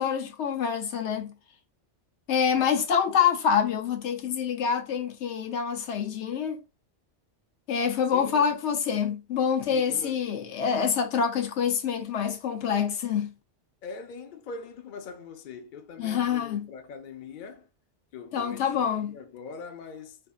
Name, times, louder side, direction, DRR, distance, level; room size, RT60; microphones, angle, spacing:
voice 1, 0.0-1.3 2.3-6.6 7.7-13.3 16.0-16.7 18.3-19.1, left 7 dB, 75° left, 0.9 m, -26 dB
voice 2, 8.1-8.5 9.7-10.2 13.8-17.7 18.1-20.2, left 5 dB, 55° left, 0.6 m, -42 dB
4.4 x 2.5 x 2.4 m
omnidirectional pair, 1.2 m